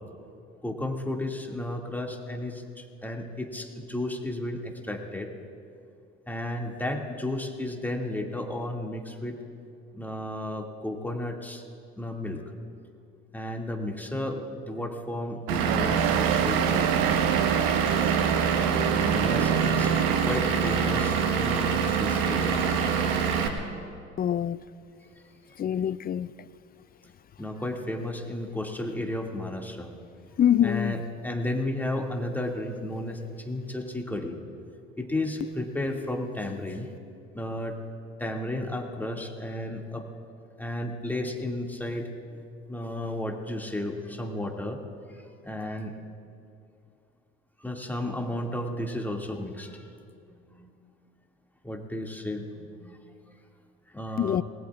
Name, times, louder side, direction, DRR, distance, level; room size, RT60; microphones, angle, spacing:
voice 1, 0.6-5.3 6.3-9.4 9.9-11.6 12.0-12.4 13.3-16.9 18.9-19.9 20.2-22.6 27.4-29.9 30.6-34.4 35.0-36.9 37.3-37.8 38.2-40.1 40.6-42.1 42.7-44.8 45.1-45.9 47.6-49.9 50.3-50.7 51.6-53.0 53.9-54.4, left 1 dB, 5° left, 0 dB, 2.2 m, -33 dB
sound 1, 15.5-20.6, right 14 dB, 60° right, 0.6 m, -30 dB
Vehicle / Engine, 15.5-23.5, right 6 dB, 80° right, 1.4 m, -25 dB
voice 2, 24.2-24.6 25.6-26.3 30.4-30.9 54.2-54.4, left 10 dB, 30° left, 18 dB, 0.5 m, -24 dB
27.0 x 20.0 x 2.5 m, 2.4 s
hypercardioid pair, 70°, 31 cm